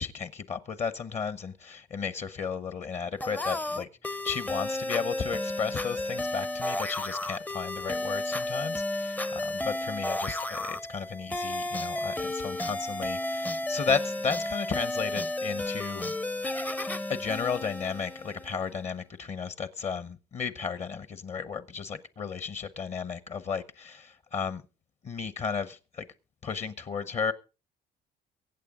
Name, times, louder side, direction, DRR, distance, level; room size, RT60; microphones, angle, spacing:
voice 1, 0.0-16.1 17.1-24.6 25.0-26.1 26.4-27.3, left 6 dB, 40° left, 0.9 m, -34 dB
sound 1, 3.2-18.7, left 1 dB, 10° left, 0.6 m, -33 dB
23.0 x 8.4 x 3.7 m
cardioid pair, 110°, 17 cm